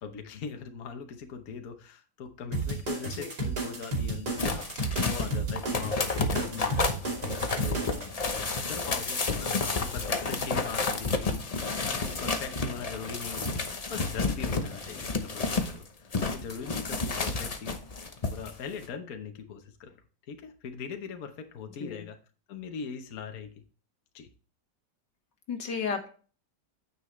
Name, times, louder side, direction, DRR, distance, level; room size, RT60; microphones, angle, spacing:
voice 1, 0.0-4.7 5.0-6.8 7.6-8.2 8.7-13.5 13.9-17.8 18.3-20.0 20.3-22.2 22.5-23.5 24.1-24.3, left 6 dB, 60° left, 5 dB, 1.4 m, -40 dB
sound 1, 2.5-8.1, right 2 dB, 65° right, 3.5 m, -32 dB
sound 2, 4.4-15.8 16.1-18.5 18.8-18.9, left 3 dB, 35° left, 0.6 m, -31 dB
voice 2, 25.5-26.1, left 6 dB, 80° left, 4 dB, 2.2 m, -33 dB
9.5 x 7.5 x 3.2 m, 0.38 s
omnidirectional pair, 1.9 m